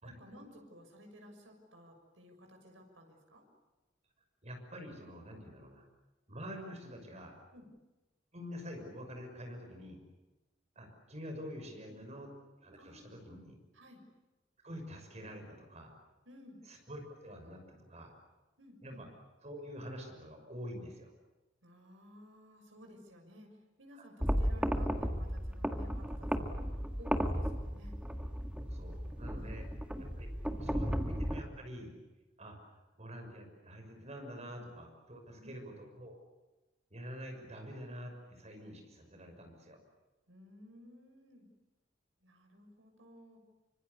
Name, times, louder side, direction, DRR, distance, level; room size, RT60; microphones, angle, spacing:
voice 1, 0.0-3.4 5.3-5.4 7.5-7.7 11.9-12.0 12.8-13.2 13.7-14.0 16.2-16.6 18.6-19.1 21.6-26.6 27.0-28.0 29.4-29.7 34.4-34.6 35.4-35.6 40.3-41.5 42.2-43.4, equal, 80° right, 3 dB, 6.6 m, -56 dB
voice 2, 4.4-5.8 6.3-7.4 8.3-10.0 10.7-12.3 12.6-13.6 14.6-15.9 16.7-18.1 18.8-19.1 19.4-21.1 28.7-29.7 30.0-31.9 32.4-36.1 36.9-39.8, equal, 35° right, 4 dB, 6.3 m, -47 dB
sound 1, 24.2-31.4, equal, 5° right, 1.7 m, -34 dB
26.0 x 25.0 x 8.4 m, 1.1 s
head